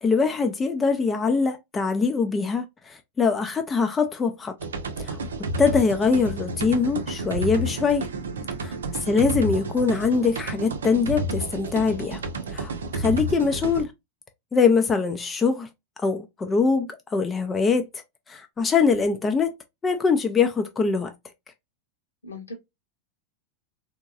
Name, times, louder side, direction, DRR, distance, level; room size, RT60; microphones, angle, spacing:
voice 1, 0.0-4.5 5.0-5.2 5.6-8.1 8.6-12.2 12.5-13.9 14.5-15.7 16.0-18.0 18.3-19.6 19.8-21.1, left 5 dB, 15° left, 0.5 m, -23 dB
sound 1, 4.6-13.8, right 1 dB, 65° right, 0.6 m, -31 dB
voice 2, 22.2-22.5, left 2 dB, 75° left, 1.4 m, -39 dB
3.6 x 2.9 x 2.4 m
figure-of-eight pair, 90°, 0 cm